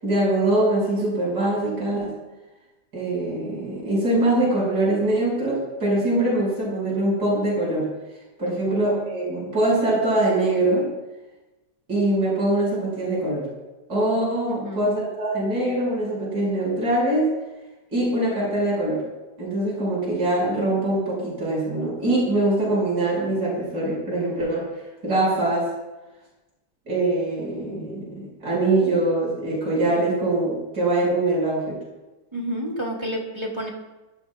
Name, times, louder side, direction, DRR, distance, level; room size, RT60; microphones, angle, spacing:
voice 1, 0.0-2.2 2.9-7.9 8.4-10.9 11.9-13.5 13.9-17.3 17.9-19.0 19.4-24.7 25.0-25.7 26.9-31.8, right 1 dB, 70° right, -4 dB, 6.6 m, -23 dB
voice 2, 14.5-14.9 32.3-33.7, equal, 15° right, -1 dB, 2.4 m, -30 dB
23.5 x 14.0 x 2.4 m, 1.1 s
omnidirectional pair, 1.9 m